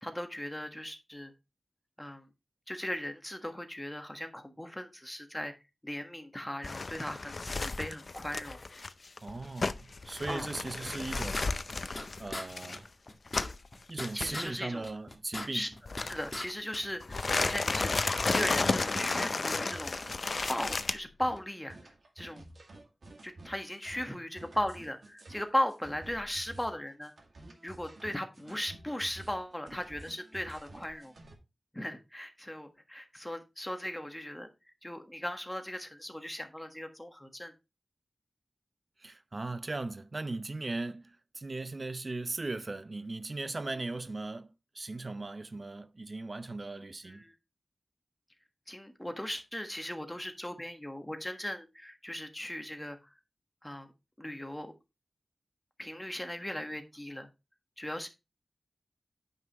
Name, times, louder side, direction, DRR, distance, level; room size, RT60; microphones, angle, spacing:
voice 1, 0.0-1.3 2.0-2.3 2.7-5.5 5.8-8.6 10.3-10.5 14.1-14.8 15.5-15.7 16.1-17.9 18.2-19.9 20.5-21.8 22.2-22.4 23.2-27.1 27.6-31.1 31.7-34.5 34.8-37.5 47.0-47.3 48.7-53.0 53.6-53.9 54.2-54.7 55.8-57.3 57.8-58.1, left 1 dB, 10° left, 1.4 m, -37 dB
sound 1, 6.6-13.7 14.0-14.3 15.9-16.5 17.0-20.9, left 3 dB, 60° left, 0.6 m, -33 dB
voice 2, 9.2-11.9 12.2-12.9 13.9-15.7 39.0-47.2, right 2 dB, 45° right, 0.7 m, -38 dB
sound 2, 10.8-12.1 12.3-12.5 12.7-12.8 13.1-14.5 14.8-16.5 16.7-18.1 18.3-18.5, left 2 dB, 35° left, 1.9 m, -39 dB
sound 3, 19.0-31.4, right 1 dB, 75° right, 2.1 m, -51 dB
9.3 x 5.7 x 3.0 m
wide cardioid pair, 75°, 0 cm